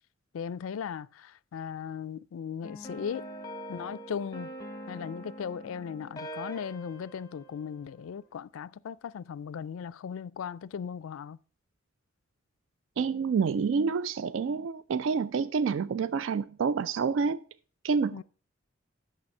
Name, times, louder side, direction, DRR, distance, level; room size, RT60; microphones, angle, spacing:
voice 1, 0.3-3.3 3.7-4.5 4.9-11.4 18.1-18.2, left 7 dB, 85° left, 0.4 m, -37 dB
sound 1, 2.6-8.3, equal, 20° left, 0.8 m, -44 dB
voice 2, 13.0-17.4 17.8-18.2, right 5 dB, 70° right, 0.3 m, -28 dB
8.9 x 6.5 x 5.4 m
head